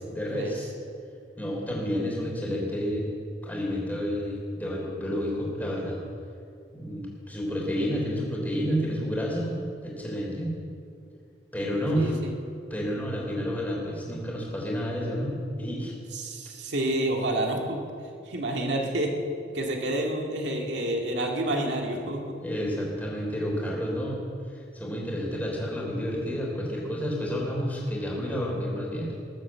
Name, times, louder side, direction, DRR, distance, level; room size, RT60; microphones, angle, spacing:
voice 1, 0.1-0.7 1.4-3.1 3.4-6.0 6.7-9.5 9.8-10.5 11.5-12.2 12.7-15.9 22.4-24.2 24.5-29.1, equal, 10° left, -3 dB, 3.5 m, -30 dB
voice 2, 16.1-17.8 18.3-19.1 19.5-22.4, right 1 dB, 75° right, 1 dB, 2.1 m, -28 dB
20.0 x 8.3 x 7.5 m, 2.5 s
head